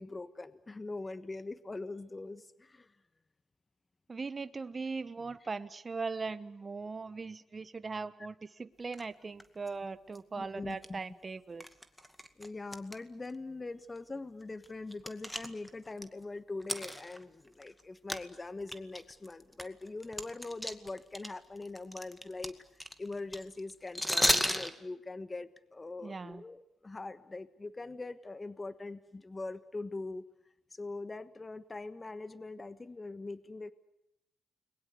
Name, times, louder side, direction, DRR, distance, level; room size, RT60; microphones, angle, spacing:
voice 1, 0.0-2.9 10.4-11.0 12.4-30.3 30.7-33.7, left 3 dB, 30° left, 13 dB, 1.3 m, -42 dB
voice 2, 4.1-11.7 26.0-26.4, right 4 dB, 40° right, 13 dB, 1.2 m, -39 dB
sound 1, 8.9-9.0 9.4-9.7 10.1-10.2 10.7-10.9 11.6-13.0 13.2-13.3 14.0-14.1 14.4-16.0 16.6-17.8 18.1-18.2 18.6-21.3 21.6-24.7, equal, 5° left, 2.2 m, -33 dB
29.5 x 21.5 x 8.2 m, 0.82 s
supercardioid pair, 60°, 0 cm